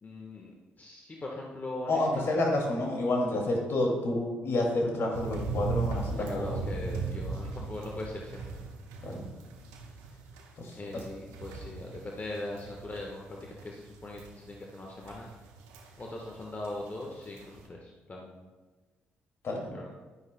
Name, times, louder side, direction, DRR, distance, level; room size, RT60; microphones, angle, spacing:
voice 1, 0.0-2.2 6.1-8.5 10.7-15.3 16.0-18.5 19.7-19.9, left 2 dB, 35° left, -1 dB, 1.3 m, -40 dB
voice 2, 1.9-6.6 9.0-9.2 10.6-11.0 19.4-19.7, left 2 dB, 60° left, 0 dB, 2.3 m, -29 dB
sound 1, 5.1-16.4 16.6-17.7, right 4 dB, 85° right, 1.1 m, -38 dB
11.0 x 9.6 x 2.2 m, 1.3 s
hypercardioid pair, 50°, 5 cm